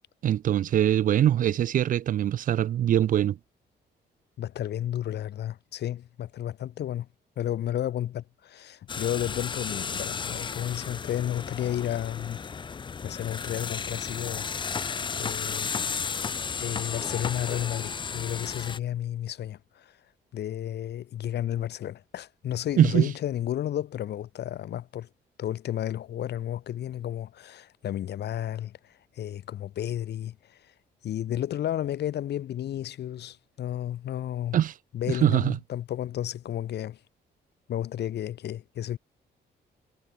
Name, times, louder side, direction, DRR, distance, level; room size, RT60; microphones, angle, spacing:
voice 1, 0.2-3.4 22.8-23.1 34.5-34.7 35.1-35.6, right 11 dB, 50° right, 0.4 m, -23 dB
voice 2, 4.4-7.1 7.4-12.4 13.0-14.9 15.2-15.7 16.6-20.0 20.3-25.1 25.4-30.6 31.0-34.6 34.9-37.0 37.7-39.0, left 11 dB, 70° left, 1.8 m, -32 dB
sound 1, 8.9-18.8, left 6 dB, 25° left, 0.5 m, -33 dB
cardioid pair, 110°, 18 cm